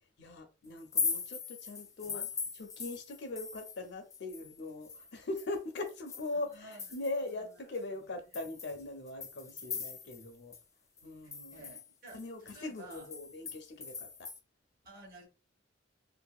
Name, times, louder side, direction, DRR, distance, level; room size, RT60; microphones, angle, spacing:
voice 1, 0.2-2.2 2.6-10.5 11.0-11.6 12.1-14.3, left 2 dB, 60° left, 0.6 m, -41 dB
sound 1, 0.8-3.8 4.1-7.3 7.7-7.8 8.3-10.3 10.5-10.6 11.0-14.4, left 5 dB, 15° left, 0.3 m, -40 dB
voice 2, 6.5-6.9 7.6-7.7 8.3-8.4 11.2-12.2 12.5-13.1 14.8-15.3, right 2 dB, 50° right, 1.1 m, -52 dB
2.7 x 2.5 x 2.3 m
head